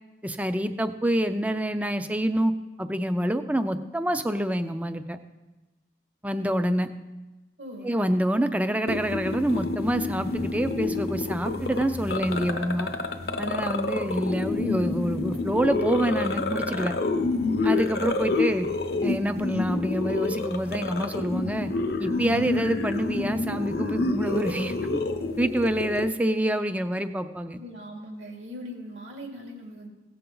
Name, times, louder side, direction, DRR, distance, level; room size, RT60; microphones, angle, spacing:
voice 1, 0.2-2.5 2.8-5.2 6.2-6.9 7.8-12.9 13.4-16.9 17.6-18.7 19.0-21.7 22.0-24.7 25.4-27.6, right 1 dB, 10° right, 10 dB, 0.4 m, -27 dB
voice 2, 7.6-7.9 27.6-29.9, equal, 75° right, 0 dB, 2.4 m, -40 dB
sound 1, 8.9-26.1, left 3 dB, 55° left, 0.7 m, -28 dB
16.5 x 6.9 x 3.9 m, 1.1 s
head